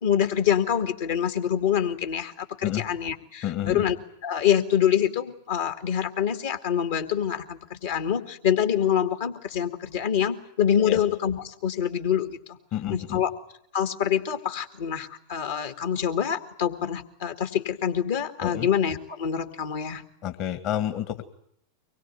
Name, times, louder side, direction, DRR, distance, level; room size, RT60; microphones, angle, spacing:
voice 1, 0.0-4.0 4.2-12.4 12.9-13.3 13.7-20.0, left 9 dB, 55° left, 8 dB, 2.0 m, -26 dB
voice 2, 3.4-3.8 10.8-11.0 12.7-13.2 18.4-18.7 20.2-21.3, left 11 dB, 40° left, 9 dB, 1.8 m, -29 dB
24.0 x 21.5 x 9.4 m, 0.70 s
figure-of-eight pair, 90°, 0 cm